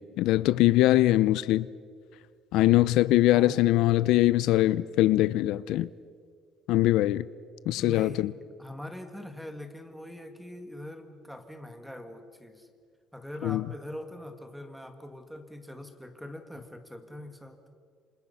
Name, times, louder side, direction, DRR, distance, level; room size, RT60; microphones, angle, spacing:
voice 1, 0.0-1.7 2.5-5.9 6.7-7.2 7.7-8.3 13.4-13.6, left 15 dB, 75° left, 0.5 m, -22 dB
voice 2, 3.3-3.7 7.8-8.2 8.6-12.7 13.1-17.6, left 1 dB, ahead, 2.1 m, -42 dB
28.0 x 26.0 x 5.6 m
cardioid pair, 150°, 0 cm